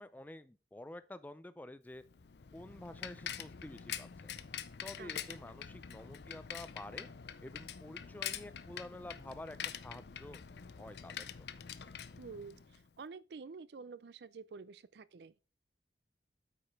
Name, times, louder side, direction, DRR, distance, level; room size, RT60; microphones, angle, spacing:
voice 1, 0.0-2.0 2.5-4.3 4.8-7.1 7.4-10.4 10.8-11.3, left 1 dB, 10° left, 0.3 m, -49 dB
Bicycle, 2.0-12.9, left 8 dB, 70° left, 0.5 m, -45 dB
voice 2, 5.0-5.4 12.2-15.5, right 4 dB, 65° right, 0.4 m, -49 dB
8.6 x 4.9 x 4.5 m
head